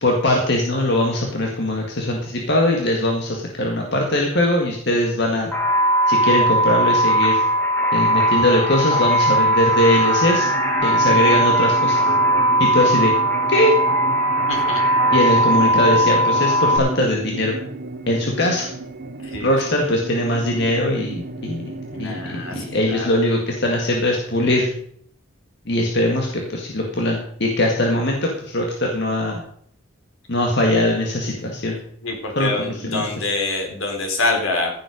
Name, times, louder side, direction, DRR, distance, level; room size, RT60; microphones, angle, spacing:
voice 1, 0.0-5.5 6.1-7.4 7.9-10.5 10.8-12.1 12.6-13.1 13.5-13.7 15.1-17.6 18.1-18.7 19.4-21.7 22.0-24.7 25.7-29.4 30.3-31.8 32.4-33.3, left 1 dB, 55° left, 0 dB, 2.0 m, -21 dB
sound 1, 5.5-16.8, right 1 dB, 10° left, 2.2 m, -18 dB
sound 2, 10.3-23.0, right 2 dB, 50° right, 1.1 m, -34 dB
voice 2, 14.5-14.8 19.3-19.5 21.9-23.1 32.0-34.7, left 2 dB, 80° left, 1 dB, 4.1 m, -25 dB
15.0 x 7.8 x 5.2 m, 0.63 s
head